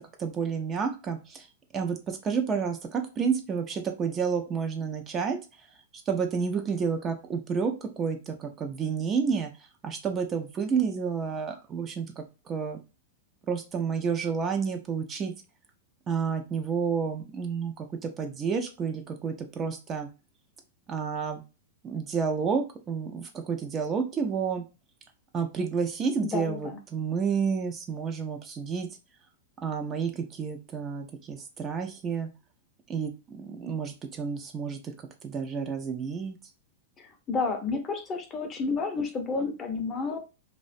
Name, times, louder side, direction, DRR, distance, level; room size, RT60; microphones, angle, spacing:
voice 1, 0.2-1.5 1.7-5.4 6.1-9.5 9.8-12.8 13.5-15.3 16.1-20.1 20.9-21.4 21.8-24.6 25.3-28.9 29.6-32.3 32.9-34.9 35.2-36.4, right 6 dB, 25° right, 5 dB, 0.4 m, -30 dB
voice 2, 26.2-26.8 37.0-40.2, left 4 dB, 25° left, 5 dB, 0.5 m, -31 dB
2.3 x 2.1 x 2.5 m, 0.30 s
hypercardioid pair, 105°, 0 cm